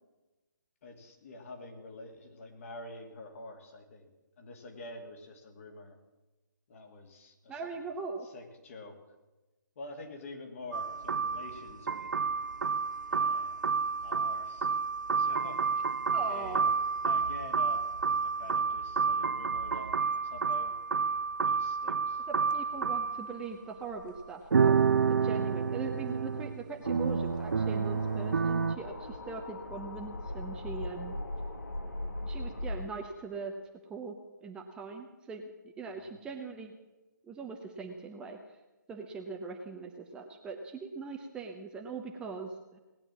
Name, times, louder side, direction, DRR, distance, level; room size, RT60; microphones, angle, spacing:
voice 1, 0.8-4.1 4.4-6.0 6.7-7.8 8.2-9.0 9.8-12.1 13.1-13.5 14.0-14.7 15.2-15.7 15.9-16.7 17.0-17.9 18.2-20.0 20.2-20.8 21.5-22.2 36.0-36.2, left 2 dB, 45° left, 3 dB, 2.6 m, -47 dB
voice 2, 7.5-8.3 16.1-16.7 22.3-24.7 25.1-31.2 32.3-33.5 33.9-34.1 34.4-36.7 37.2-38.6 38.9-42.8, right 4 dB, 10° right, 2 dB, 0.8 m, -41 dB
sound 1, 10.7-23.5 24.2-24.3 24.5-28.8, right 5 dB, 65° right, 0.5 m, -29 dB
sound 2, 26.8-32.8, left 1 dB, 70° left, 2.1 m, -40 dB
18.5 x 9.1 x 7.5 m, 1.1 s
figure-of-eight pair, 145°, 10 cm